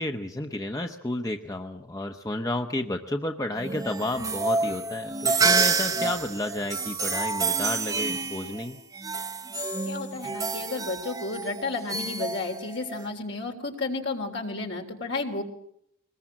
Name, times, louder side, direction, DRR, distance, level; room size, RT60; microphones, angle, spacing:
voice 1, 0.0-8.8, left 1 dB, 15° left, 5 dB, 0.9 m, -31 dB
sound 1, 3.6-13.1, right 4 dB, 15° right, 0.9 m, -28 dB
voice 2, 9.9-15.4, left 3 dB, 55° left, 3 dB, 3.5 m, -32 dB
23.0 x 20.5 x 7.4 m, 0.72 s
head